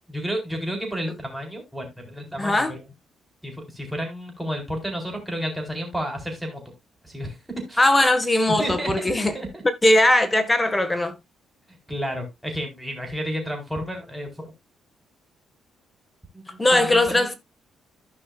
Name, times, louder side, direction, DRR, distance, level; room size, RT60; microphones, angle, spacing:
voice 1, 0.1-2.9 3.4-6.6 7.0-7.8 8.6-9.6 11.9-14.5 16.3-17.3, equal, 5° right, 4.3 m, -31 dB
voice 2, 2.4-2.7 7.8-9.4 9.8-11.2 16.6-17.3, left 1 dB, 15° left, 1.7 m, -19 dB
15.5 x 5.5 x 2.5 m
cardioid pair, 90°, 0 cm